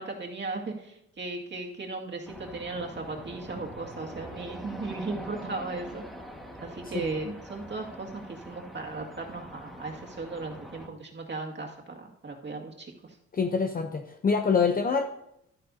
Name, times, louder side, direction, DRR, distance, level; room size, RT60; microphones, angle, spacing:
voice 1, 0.0-6.0 6.6-13.2, right 3 dB, 35° right, 0 dB, 2.0 m, -37 dB
sound 1, 2.2-10.9, equal, ahead, 1.6 m, -44 dB
voice 2, 13.3-15.0, left 5 dB, 30° left, 6 dB, 0.7 m, -25 dB
12.5 x 9.8 x 2.7 m, 0.81 s
cardioid pair, 90°, 30 cm